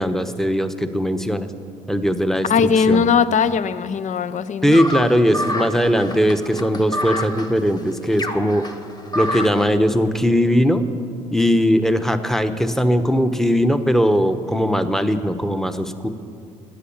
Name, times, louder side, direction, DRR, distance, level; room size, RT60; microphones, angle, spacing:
voice 1, 0.0-1.5 1.9-3.0 4.6-8.6 9.1-10.8 11.3-16.1, equal, ahead, 1.0 m, -19 dB
voice 2, 2.4-4.8, left 6 dB, 45° left, 0.6 m, -19 dB
sound 1, 4.7-9.7, left 1 dB, 25° left, 1.3 m, -28 dB
13.0 x 8.4 x 8.7 m
hypercardioid pair, 60°, 17 cm